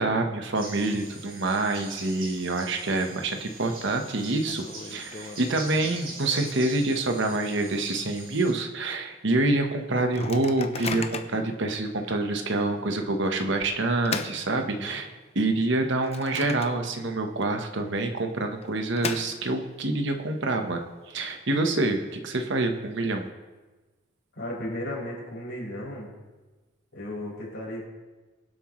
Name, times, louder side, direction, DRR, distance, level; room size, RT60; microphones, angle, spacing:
voice 1, 0.0-15.1 15.3-23.3, right 2 dB, 60° right, 5 dB, 1.1 m, -27 dB
sound 1, 0.5-8.5, right 2 dB, 45° right, 3.8 m, -43 dB
Microwave oven, 3.2-3.7 4.0-4.1 4.4-7.5 7.9-8.0 8.3-8.6 9.1-9.2 10.0-11.5 12.1-12.2 13.4-15.2 15.6-17.1 17.4-17.5 18.4-19.8, left 4 dB, 30° left, 0.7 m, -38 dB
voice 2, 14.6-15.0 24.3-26.1 26.9-27.9, left 1 dB, 55° left, -4 dB, 4.9 m, -35 dB
23.5 x 7.9 x 3.2 m, 1.2 s
head